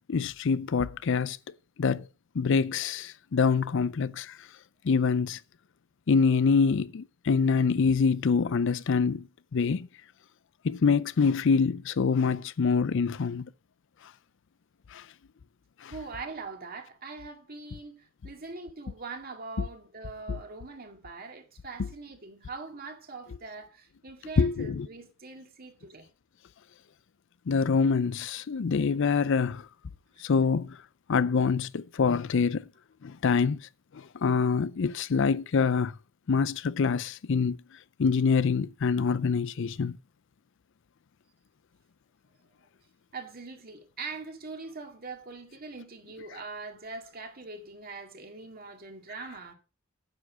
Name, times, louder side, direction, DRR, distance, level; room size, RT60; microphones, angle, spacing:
voice 1, 0.1-1.4 1.8-2.1 2.3-4.4 4.8-5.4 6.1-9.2 9.5-9.9 10.6-13.5 14.9-15.0 15.8-15.9 24.4-24.9 27.5-29.7 30.2-30.8 31.1-32.6 33.0-33.6 33.9-35.9 36.3-37.6 38.0-40.0, left 5 dB, 65° left, 0.5 m, -25 dB
voice 2, 15.9-26.1 30.2-30.3 43.1-49.5, right 4 dB, 45° right, 2.2 m, -42 dB
9.5 x 8.4 x 4.9 m
head